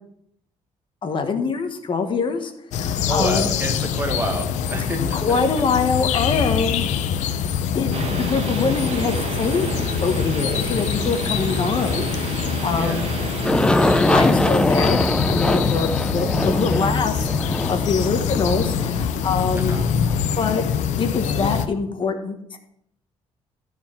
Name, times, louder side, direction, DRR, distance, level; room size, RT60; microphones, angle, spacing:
voice 1, 1.0-3.5 5.1-6.9 7.7-13.1 13.9-19.8 20.4-20.6 21.0-22.6, left 4 dB, 45° left, 6 dB, 1.4 m, -24 dB
sound 1, 2.7-21.7, left 7 dB, 90° left, 0.6 m, -25 dB
voice 2, 3.1-5.7 12.7-13.1 19.5-19.9, right 1 dB, 15° right, 3 dB, 1.7 m, -29 dB
sound 2, 7.9-13.5, right 6 dB, 55° right, 1.3 m, -31 dB
Aircraft, 13.4-20.1, left 1 dB, 5° left, 0.5 m, -22 dB
13.0 x 4.8 x 5.4 m, 0.73 s
cardioid pair, 115°, 12 cm